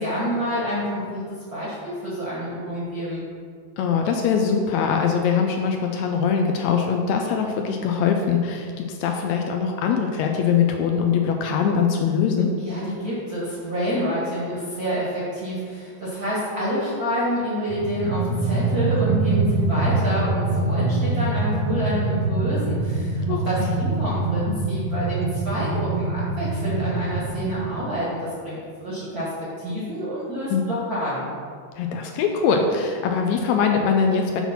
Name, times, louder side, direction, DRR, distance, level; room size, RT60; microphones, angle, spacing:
voice 1, 0.0-3.2 12.6-31.3, equal, 45° right, -7 dB, 1.2 m, -28 dB
voice 2, 3.8-12.5 23.3-23.7 30.5-30.7 31.8-34.4, left 6 dB, 80° left, 3 dB, 1.7 m, -22 dB
sound 1, 17.7-27.8, right 3 dB, 80° right, 2.2 m, -24 dB
7.1 x 4.4 x 5.7 m, 2.1 s
omnidirectional pair, 3.5 m